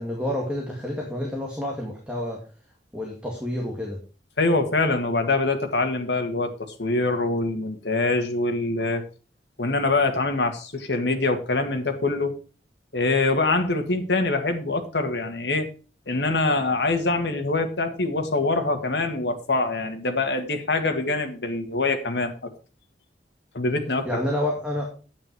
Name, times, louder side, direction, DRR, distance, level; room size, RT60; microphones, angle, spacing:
voice 1, 0.0-2.4 2.9-4.0 24.0-24.9, left 1 dB, 5° right, -1 dB, 1.9 m, -29 dB
voice 2, 4.4-6.5 6.8-9.0 9.6-12.3 12.9-15.7 16.1-22.5 23.5-24.1, left 3 dB, 85° left, 6 dB, 1.7 m, -24 dB
8.9 x 8.9 x 4.6 m, 0.37 s
head